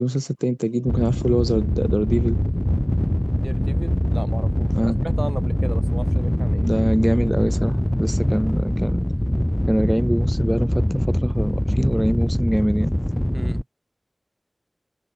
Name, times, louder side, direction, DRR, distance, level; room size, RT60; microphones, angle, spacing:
voice 1, 0.0-2.4 4.7-4.9 6.7-9.0 9.7-12.9, equal, 10° right, 2.9 m, -23 dB
sound 1, 0.9-13.6, equal, 10° left, 0.7 m, -22 dB
voice 2, 3.3-6.7 13.3-13.6, right 2 dB, 40° right, 5.5 m, -34 dB
wide cardioid pair, 50°, 0 cm